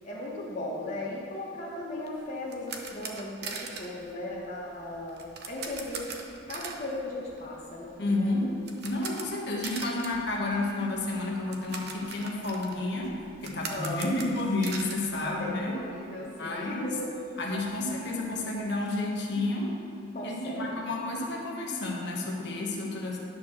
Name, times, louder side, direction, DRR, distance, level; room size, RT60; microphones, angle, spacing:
voice 1, 0.0-6.2 6.5-7.9 8.2-8.6 13.7-14.3 15.2-17.1 20.1-20.9, left 1 dB, 35° left, -5 dB, 1.1 m, -37 dB
sound 1, 2.0-16.0 16.3-16.4 16.8-16.9 17.2-18.7, right 4 dB, 55° right, 0.8 m, -42 dB
voice 2, 8.0-8.6 8.8-15.8 16.4-16.9 17.4-19.8 20.2-23.2, left 2 dB, 55° left, -2 dB, 1.3 m, -31 dB
10.5 x 4.5 x 6.4 m, 2.6 s
head